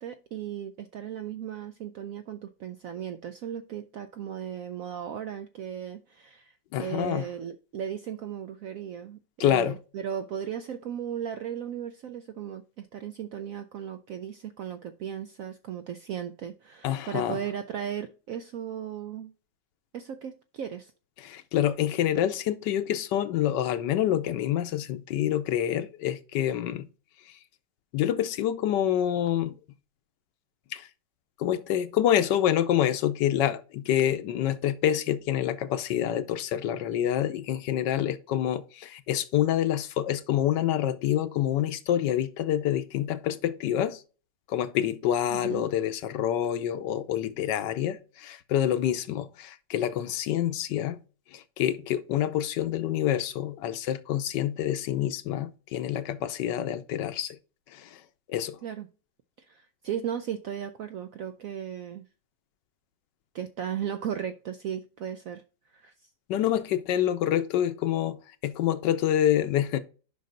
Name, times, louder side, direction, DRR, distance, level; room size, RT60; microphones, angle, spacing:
voice 1, 0.0-19.3 19.9-20.9 45.3-45.7 58.6-58.9 59.5-62.0 63.3-65.4 65.7-66.1, right 9 dB, 75° right, 0.8 m, -36 dB
voice 2, 6.7-7.3 9.4-9.8 16.8-17.4 21.2-26.9 27.9-29.6 30.7-30.9 31.4-44.0 44.5-51.0 51.3-57.4 57.7-58.0 58.3-58.6 66.3-69.8, left 11 dB, 75° left, 1.3 m, -27 dB
7.4 x 5.6 x 3.8 m
omnidirectional pair, 1.9 m